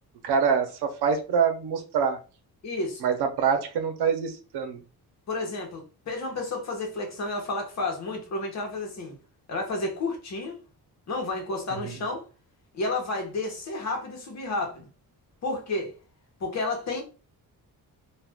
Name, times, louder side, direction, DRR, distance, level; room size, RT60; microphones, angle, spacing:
voice 1, 0.2-2.2 3.0-4.8 11.8-12.0, right 6 dB, 85° right, 0.8 m, -25 dB
voice 2, 2.6-3.0 5.3-9.2 9.5-10.6 11.1-12.2 12.7-14.9 15.4-15.9 16.4-17.0, left 2 dB, 45° left, 1.0 m, -31 dB
2.4 x 2.4 x 3.4 m
wide cardioid pair, 160°, 38 cm